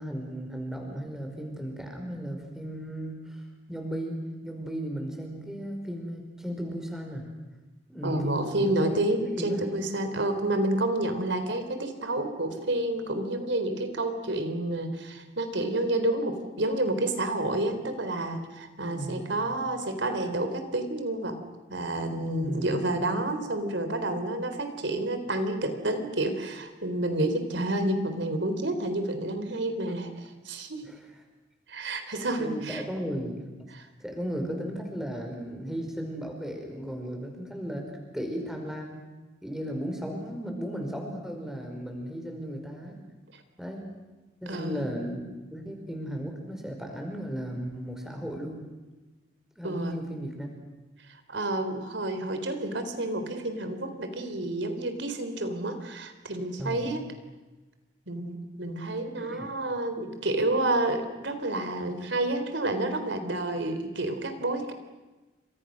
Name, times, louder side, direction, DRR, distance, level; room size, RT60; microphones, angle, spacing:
voice 1, 0.0-3.4 3.7-7.3 7.9-9.0 9.4-9.6 18.9-19.3 22.4-23.0 29.9-30.0 30.8-31.0 32.1-33.4 34.0-39.0 39.4-43.0 43.6-43.9 44.4-48.6 49.6-50.5 56.6-56.9 59.2-59.5, equal, ahead, 2 dB, 5.3 m, -35 dB
voice 2, 8.0-21.4 21.7-30.8 31.7-32.8 33.7-33.9 44.5-44.9 49.6-50.0 51.3-57.0 58.1-64.7, right 1 dB, 70° right, 8 dB, 3.8 m, -29 dB
29.5 x 26.5 x 6.4 m, 1.2 s
head